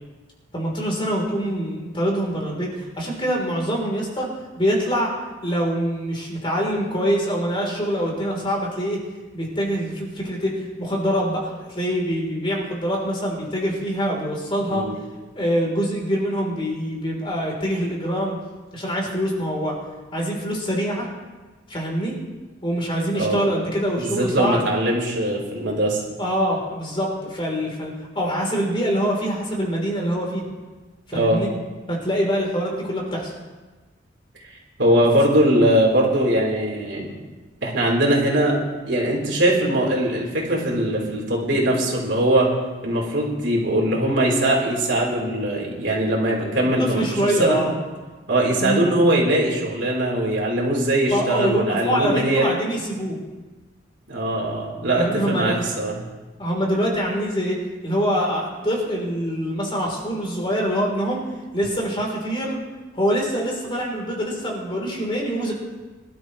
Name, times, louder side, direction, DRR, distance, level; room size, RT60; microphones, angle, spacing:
voice 1, 0.5-4.3 4.6-5.1 5.4-9.0 9.3-14.9 15.4-18.3 18.7-19.7 20.1-21.1 21.7-22.2 22.6-24.7 26.2-30.4 31.1-31.5 31.9-33.3 46.9-47.7 48.6-48.8 51.1-53.2 55.0-55.7 56.4-61.2 61.5-62.6 62.9-65.5, equal, 25° left, -2 dB, 3.6 m, -24 dB
voice 2, 23.1-23.5 24.0-26.0 31.1-31.4 34.4-34.5 34.8-37.1 37.6-38.6 38.9-42.5 42.8-47.6 48.3-52.6 54.1-56.0, right 1 dB, 65° right, -2 dB, 3.9 m, -21 dB
24.0 x 12.5 x 3.2 m, 1.3 s
head